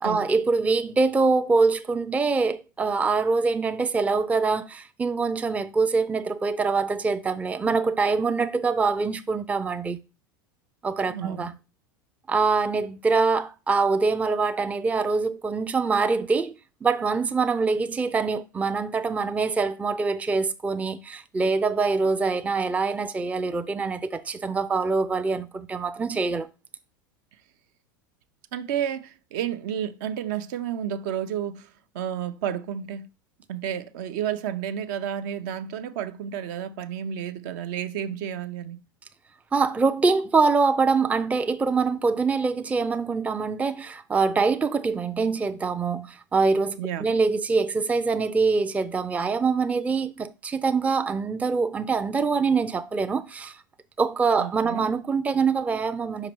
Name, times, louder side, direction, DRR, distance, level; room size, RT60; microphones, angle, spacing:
voice 1, 0.0-10.0 10.8-11.5 12.3-26.5 39.5-53.6 54.0-56.3, right 4 dB, 10° right, 0.4 m, -24 dB
voice 2, 11.1-11.5 28.5-31.7 31.9-33.1 33.5-38.8 46.8-47.1 54.4-54.8, right 9 dB, 60° right, 0.7 m, -31 dB
5.3 x 4.9 x 4.6 m
hypercardioid pair, 90°, 11 cm